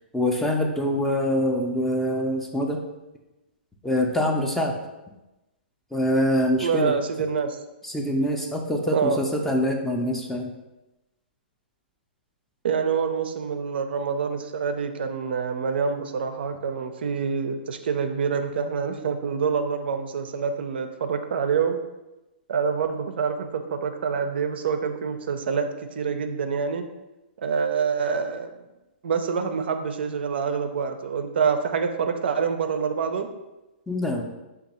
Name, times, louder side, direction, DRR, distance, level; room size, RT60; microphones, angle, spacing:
voice 1, 0.1-2.8 3.8-4.7 5.9-6.9 7.8-10.5 33.9-34.2, equal, 5° left, 1 dB, 0.3 m, -24 dB
voice 2, 6.6-7.6 8.9-9.2 12.6-21.8 22.5-25.7 26.0-26.8 27.4-28.5 29.0-33.3, right 6 dB, 65° right, 7 dB, 0.4 m, -26 dB
2.7 x 2.3 x 4.1 m, 1.0 s
hypercardioid pair, 130°, 6 cm